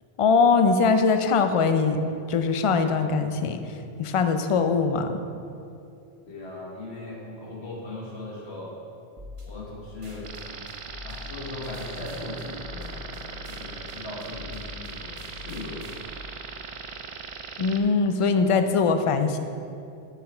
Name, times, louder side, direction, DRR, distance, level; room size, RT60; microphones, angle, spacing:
voice 1, 0.2-2.0 2.3-5.2 17.6-19.4, left 5 dB, 50° left, 7 dB, 0.4 m, -22 dB
voice 2, 6.3-8.8 9.4-10.7 11.0-16.2, left 2 dB, 90° left, -4 dB, 1.7 m, -39 dB
sound 1, 9.2-16.0, left 3 dB, 30° right, 0.9 m, -43 dB
sound 2, 10.2-17.8, right 5 dB, 50° right, 0.4 m, -39 dB
8.4 x 5.8 x 4.3 m, 2.5 s
omnidirectional pair, 1.1 m